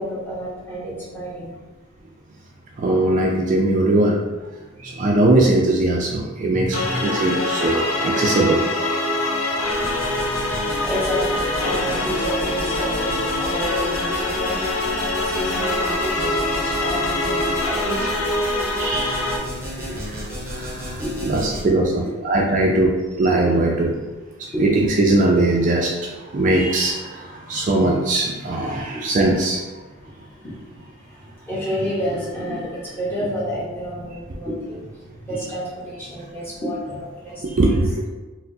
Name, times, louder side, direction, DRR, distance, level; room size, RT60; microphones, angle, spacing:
voice 1, 0.0-1.5 4.8-5.2 6.5-7.0 10.8-14.7 15.2-18.5 19.7-20.0 20.6-20.7 21.0-22.1 22.4-22.8 23.4-23.7 24.5-24.6 28.5-29.0 30.0-37.8, equal, 10° left, -8 dB, 1.0 m, -30 dB
voice 2, 2.8-4.2 4.8-8.6 18.8-19.3 19.7-20.2 20.5-21.0 21.3-21.8 22.2-22.9 23.2-23.9 24.6-24.7 25.0-29.6 37.4-37.9, right 2 dB, 40° right, -1 dB, 0.3 m, -20 dB
sound 1, 6.7-19.4, left 2 dB, 75° left, 0.5 m, -24 dB
sound 2, 9.7-21.6, equal, 10° right, 0.7 m, -32 dB
4.2 x 2.0 x 2.7 m, 1.2 s
head